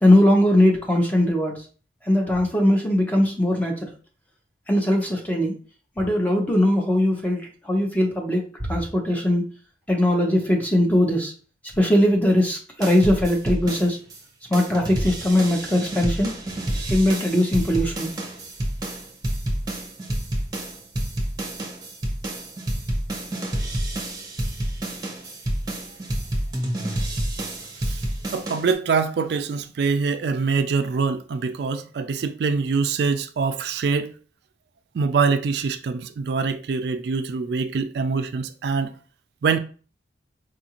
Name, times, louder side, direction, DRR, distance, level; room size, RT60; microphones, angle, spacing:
voice 1, 0.0-1.6 2.0-3.9 4.7-5.5 6.0-9.4 9.9-11.3 11.7-14.0 14.5-16.3 16.9-18.1, left 1 dB, 10° left, 0.7 m, -20 dB
sound 1, 12.8-14.2 14.5-28.7, right 1 dB, 20° right, 0.8 m, -29 dB
voice 2, 28.3-34.1 34.9-38.9 39.4-39.6, right 5 dB, 65° right, 0.3 m, -24 dB
4.8 x 2.5 x 2.9 m
head